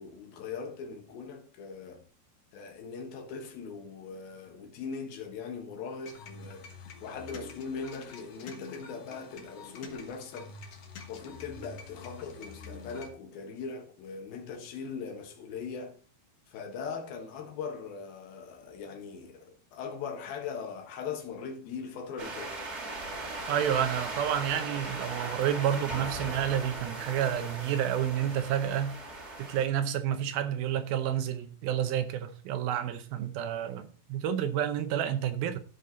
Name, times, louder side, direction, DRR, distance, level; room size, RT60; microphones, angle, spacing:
voice 1, 0.0-2.0 2.5-10.5 11.1-16.0 16.5-22.6, left 5 dB, 75° left, 3.2 m, -40 dB
sound 1, 6.0-13.1, left 4 dB, 55° left, 1.8 m, -47 dB
sound 2, 22.2-29.7, right 2 dB, 40° right, 1.5 m, -38 dB
voice 2, 23.5-29.0 29.4-35.6, right 10 dB, 80° right, 2.6 m, -30 dB
13.5 x 5.3 x 4.0 m
omnidirectional pair, 4.4 m